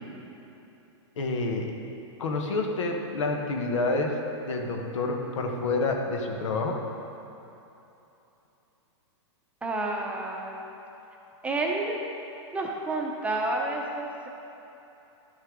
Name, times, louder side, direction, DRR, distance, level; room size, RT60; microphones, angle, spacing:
voice 1, 1.2-1.7 2.2-4.1 4.5-6.7, left 3 dB, 80° left, 2 dB, 1.2 m, -28 dB
voice 2, 9.6-10.6 11.4-12.0 12.5-14.3, right 2 dB, 10° right, -1 dB, 0.7 m, -30 dB
12.0 x 6.5 x 3.7 m, 3.0 s
hypercardioid pair, 145°, 16 cm